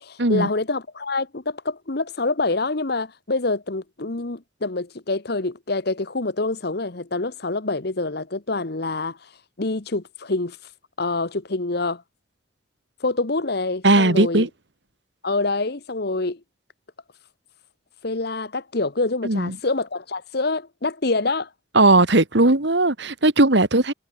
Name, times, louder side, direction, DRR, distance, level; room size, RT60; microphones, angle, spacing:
voice 1, 0.0-9.3 9.6-10.6 11.0-12.0 13.0-14.5 15.2-16.4 18.0-21.5, left 3 dB, 55° left, 1.2 m, -26 dB
voice 2, 13.8-14.5 19.2-19.6 21.7-23.9, right 2 dB, 60° right, 2.1 m, -17 dB
head